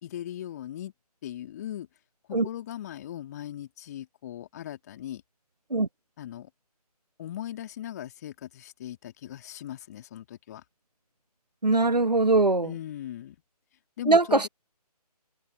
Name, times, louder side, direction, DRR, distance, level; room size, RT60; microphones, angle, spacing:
voice 1, 0.0-0.9 1.2-1.9 2.3-5.2 6.2-6.5 7.2-10.6 12.6-13.4 14.0-14.5, left 11 dB, 25° left, 2.5 m, -39 dB
voice 2, 11.6-12.7 14.1-14.5, right 3 dB, 85° right, 1.3 m, -21 dB
figure-of-eight pair, 150°, 20 cm